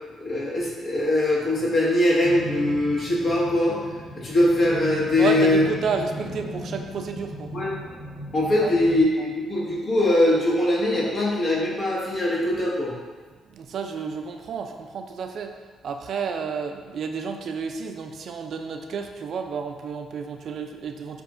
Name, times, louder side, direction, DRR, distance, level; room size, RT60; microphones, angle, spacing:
voice 1, 0.2-3.8 4.1-5.6 7.5-7.7 8.3-12.9, left 1 dB, 55° left, -6 dB, 1.5 m, -22 dB
sound 1, 2.2-9.0, equal, 35° left, 1.4 m, -36 dB
voice 2, 5.2-7.5 8.6-8.8 9.2-9.3 13.5-15.6 15.8-21.2, right 5 dB, 60° right, 5 dB, 0.3 m, -31 dB
7.5 x 2.5 x 2.4 m, 1.4 s
cardioid pair, 90°, 0 cm